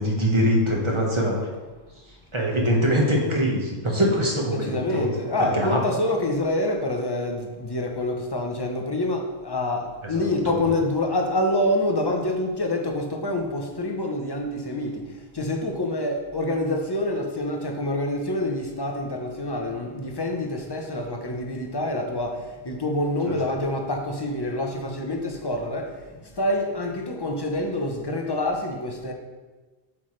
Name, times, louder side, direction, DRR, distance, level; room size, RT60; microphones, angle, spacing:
voice 1, 0.0-1.4 2.3-5.1 5.4-5.8 10.1-10.6 23.3-23.4, equal, 25° right, -2 dB, 1.3 m, -23 dB
voice 2, 4.4-15.1 15.3-25.9 26.4-29.1, left 1 dB, 25° left, 3 dB, 0.7 m, -26 dB
7.8 x 5.8 x 3.2 m, 1.3 s
omnidirectional pair, 1.2 m